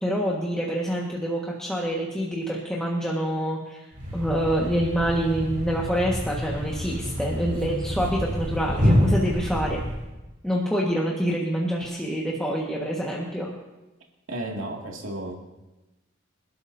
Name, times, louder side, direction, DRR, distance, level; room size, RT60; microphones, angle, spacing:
voice 1, 0.0-3.9 4.1-9.8 10.4-13.5, equal, 5° left, -4 dB, 1.6 m, -26 dB
Thump thud, 3.9-10.1, equal, 45° right, 6.6 m, -27 dB
voice 2, 14.3-15.3, right 1 dB, 85° right, -1 dB, 2.4 m, -33 dB
26.5 x 12.5 x 2.8 m, 1.1 s
head